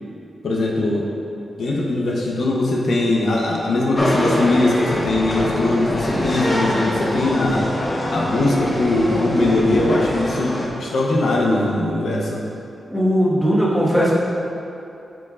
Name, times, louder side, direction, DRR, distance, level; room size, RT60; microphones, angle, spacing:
voice 1, 0.4-1.0 1.3-7.7 8.1-12.4, left 2 dB, 70° left, -3 dB, 0.8 m, -20 dB
sound 1, 3.9-10.7, left 1 dB, 30° left, 1.0 m, -24 dB
voice 2, 6.0-6.5 12.9-14.1, equal, ahead, -7 dB, 1.4 m, -19 dB
9.0 x 4.7 x 2.4 m, 2.8 s
cardioid pair, 90°, 0 cm